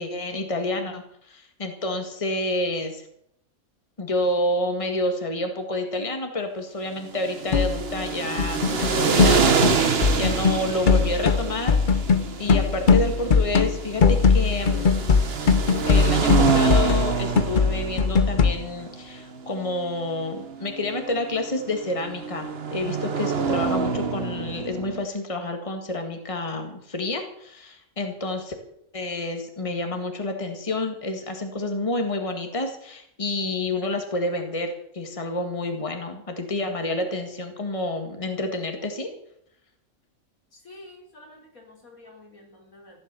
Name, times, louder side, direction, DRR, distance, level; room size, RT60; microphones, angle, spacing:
voice 1, 0.0-3.1 4.0-12.0 12.4-15.1 15.9-28.5 28.9-39.1, left 2 dB, 25° left, 4 dB, 2.0 m, -29 dB
sound 1, 7.1-25.0, right 5 dB, 50° right, 1.3 m, -27 dB
sound 2, 7.5-8.0 8.4-18.6, left 5 dB, 45° left, 0.8 m, -20 dB
voice 2, 40.5-43.0, left 2 dB, 85° left, -1 dB, 5.1 m, -48 dB
15.5 x 11.0 x 6.9 m, 0.73 s
omnidirectional pair, 1.4 m